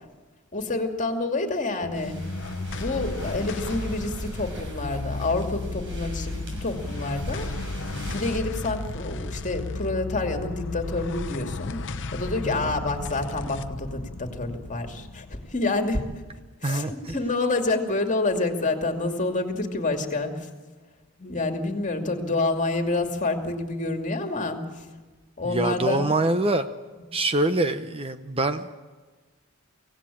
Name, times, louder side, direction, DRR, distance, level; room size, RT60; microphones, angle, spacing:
voice 1, 0.5-2.2 2.7-7.5 8.1-11.8 12.1-16.0 16.6-20.5 21.2-24.6 25.4-26.1, left 2 dB, 35° left, 5 dB, 2.5 m, -28 dB
sound 1, 1.8-16.4, left 3 dB, 60° left, 0.9 m, -34 dB
sound 2, 1.9-8.4, equal, 55° right, 6.5 m, -39 dB
voice 2, 12.4-12.8 16.6-17.1 25.4-26.7 27.1-28.7, right 2 dB, 25° right, 9 dB, 0.8 m, -25 dB
24.5 x 17.0 x 8.6 m, 1.4 s
head